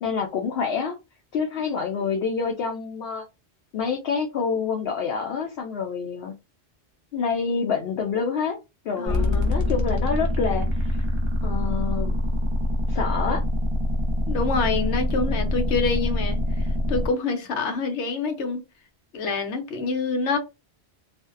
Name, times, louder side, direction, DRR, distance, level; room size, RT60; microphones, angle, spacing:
voice 1, 0.0-1.0 1.3-3.3 3.7-6.3 7.1-8.6 8.8-11.1 11.4-12.1 12.9-13.4, left 5 dB, 65° left, 0.7 m, -27 dB
voice 2, 9.0-9.5 14.3-18.6 19.1-20.4, left 4 dB, 90° left, 1.0 m, -27 dB
sound 1, 9.1-17.1, left 1 dB, 35° right, 0.5 m, -24 dB
2.5 x 2.1 x 2.3 m
omnidirectional pair, 1.2 m